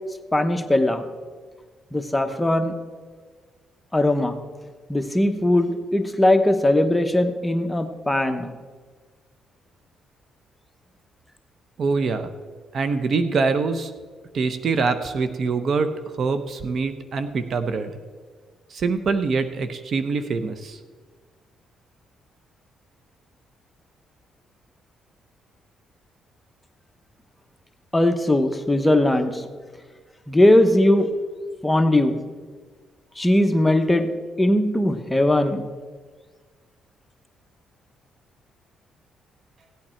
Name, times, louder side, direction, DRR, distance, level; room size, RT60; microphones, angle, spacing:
voice 1, 0.3-1.0 1.9-2.7 3.9-4.4 4.9-8.5 27.9-29.4 30.3-31.1 31.6-32.2 33.2-34.1 34.4-35.7, left 1 dB, 10° left, 6 dB, 1.0 m, -19 dB
voice 2, 11.8-12.3 12.7-13.9 14.3-15.9 16.2-17.9 18.7-20.8, right 4 dB, 55° right, 10 dB, 0.8 m, -24 dB
16.0 x 8.7 x 4.5 m, 1.5 s
cardioid pair, 90°, 0 cm